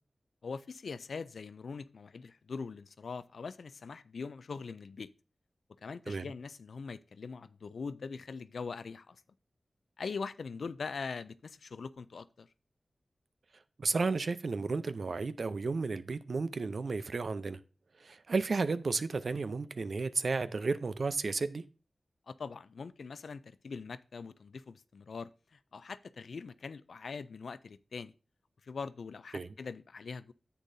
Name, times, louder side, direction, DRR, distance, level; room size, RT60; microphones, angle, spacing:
voice 1, 0.4-5.1 5.8-9.2 10.0-12.5 22.3-28.1 28.6-30.3, left 5 dB, 90° left, 0.4 m, -42 dB
voice 2, 13.8-17.6 18.0-21.6 29.3-29.5, right 4 dB, 70° right, 0.5 m, -33 dB
9.9 x 8.4 x 2.7 m
wide cardioid pair, 65°, 0 cm